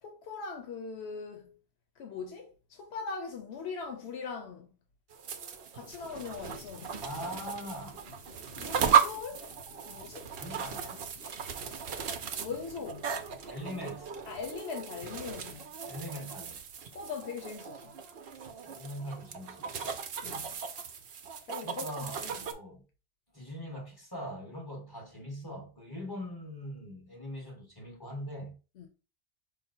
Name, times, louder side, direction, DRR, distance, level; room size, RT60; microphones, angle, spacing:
voice 1, 0.0-1.6 2.0-4.7 5.7-7.0 8.5-9.5 9.9-10.3 12.4-13.1 14.2-15.7 16.9-17.9 20.2-20.5 21.4-22.4 28.8-28.9, left 5 dB, 90° left, 0.9 m, -41 dB
sound 1, 5.1-22.5, right 7 dB, 70° right, 0.8 m, -35 dB
sound 2, 5.8-14.6, left 2 dB, 65° left, 2.5 m, -54 dB
voice 2, 7.0-8.0 10.3-11.0 13.5-14.1 15.9-16.6 18.6-20.0 21.6-22.8 23.3-28.6, equal, 20° left, 1.3 m, -41 dB
5.1 x 2.1 x 4.2 m
omnidirectional pair, 1.1 m